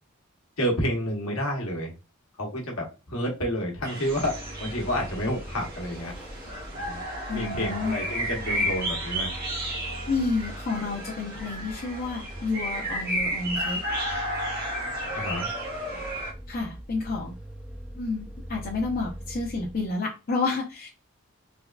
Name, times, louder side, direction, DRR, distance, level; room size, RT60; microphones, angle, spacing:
voice 1, 0.6-1.9 2.4-6.1 6.7-7.0 7.3-9.3 15.1-15.5, equal, 70° left, 0 dB, 1.1 m, -29 dB
sound 1, 3.8-16.3, equal, 45° right, 1.0 m, -33 dB
Vehicle, 4.0-20.0, equal, 5° right, 0.4 m, -42 dB
voice 2, 7.3-8.0 10.1-13.8 16.5-17.3 18.0-20.9, left 3 dB, 45° left, -2 dB, 0.6 m, -30 dB
3.4 x 2.2 x 2.3 m, 0.28 s
head